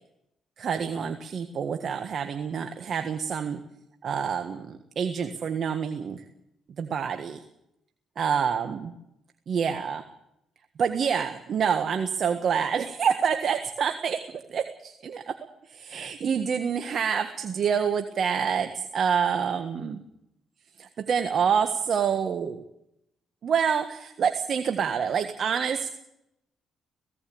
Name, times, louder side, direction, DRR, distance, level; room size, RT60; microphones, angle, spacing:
voice 1, 0.6-3.6 4.0-6.2 6.8-7.4 8.2-8.9 9.5-10.0 10.8-15.3 15.7-20.0 20.8-22.6 23.4-25.9, right 7 dB, 55° right, 7 dB, 1.6 m, -27 dB
18.0 x 17.0 x 8.7 m, 0.80 s
cardioid pair, 90°, 0 cm